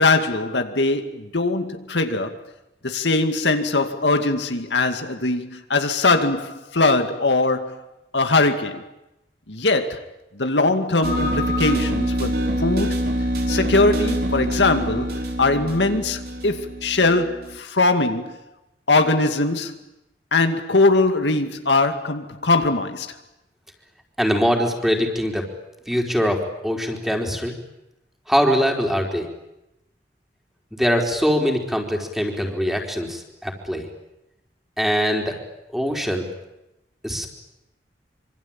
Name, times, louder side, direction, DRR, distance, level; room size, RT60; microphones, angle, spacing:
voice 1, 0.0-2.4 2.8-7.8 8.1-8.9 9.5-10.0 10.4-13.0 13.5-15.1 15.4-18.4 18.9-19.8 20.3-23.1, left 3 dB, 80° left, 2.3 m, -21 dB
sound 1, 11.0-17.6, equal, 65° right, 4.3 m, -25 dB
voice 2, 24.2-25.4 25.9-27.5 28.3-29.3 30.7-33.9 34.8-35.3 35.7-36.3 37.0-37.3, equal, ahead, 4.2 m, -22 dB
26.0 x 25.0 x 8.9 m
head